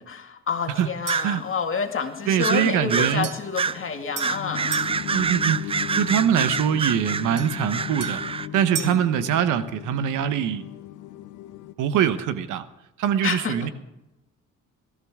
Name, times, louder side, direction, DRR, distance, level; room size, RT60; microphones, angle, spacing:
voice 1, 0.1-4.7 8.7-9.0 13.2-13.6, left 6 dB, 45° left, 4 dB, 2.2 m, -29 dB
sound 1, 1.1-1.3 2.4-3.2 3.5-3.8 4.2-8.5, right 5 dB, 20° right, 0.4 m, -27 dB
sound 2, 1.1-1.4 3.2-5.0 7.4-9.1, right 6 dB, 55° right, 2.7 m, -37 dB
voice 2, 2.3-3.3 5.1-5.6 6.0-8.2 8.5-10.6 11.8-12.6 13.0-13.7, right 9 dB, 90° right, 12 dB, 1.0 m, -23 dB
sound 3, 3.0-11.7, left 13 dB, 90° left, 0.9 m, -37 dB
20.5 x 13.5 x 3.7 m, 0.93 s
cardioid pair, 90°, 30 cm